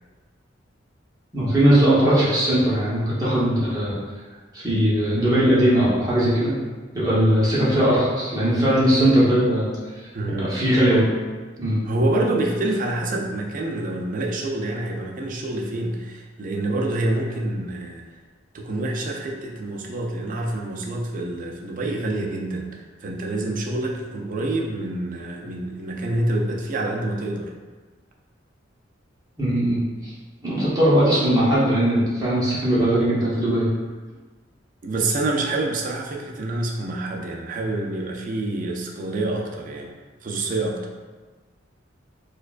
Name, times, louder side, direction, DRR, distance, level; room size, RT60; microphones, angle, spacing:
voice 1, 1.3-3.9 4.5-6.5 6.9-9.7 10.4-11.1 11.6-11.8 29.4-29.8 30.4-33.7, right 1 dB, 20° right, -9 dB, 1.0 m, -19 dB
voice 2, 10.1-10.5 11.8-18.1 18.5-27.5 34.8-39.9 40.2-40.8, right 2 dB, 45° right, 1 dB, 0.4 m, -27 dB
4.4 x 2.3 x 2.4 m, 1.3 s
head